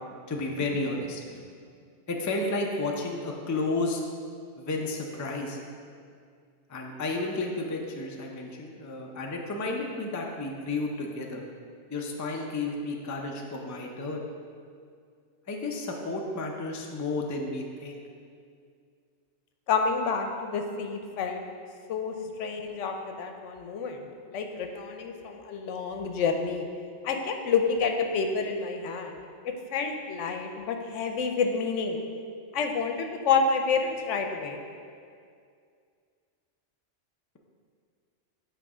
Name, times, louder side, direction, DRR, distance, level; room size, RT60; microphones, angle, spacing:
voice 1, 0.3-1.4 2.1-4.0 4.6-5.6 6.7-11.4 11.9-14.2 15.5-18.0, left 2 dB, 25° left, 0 dB, 0.4 m, -32 dB
voice 2, 19.7-21.4 21.9-22.1 22.4-26.7 27.0-29.2 29.7-32.0 32.5-34.6, left 5 dB, 85° left, 4 dB, 1.0 m, -29 dB
8.4 x 3.3 x 4.9 m, 2.2 s
omnidirectional pair, 1.2 m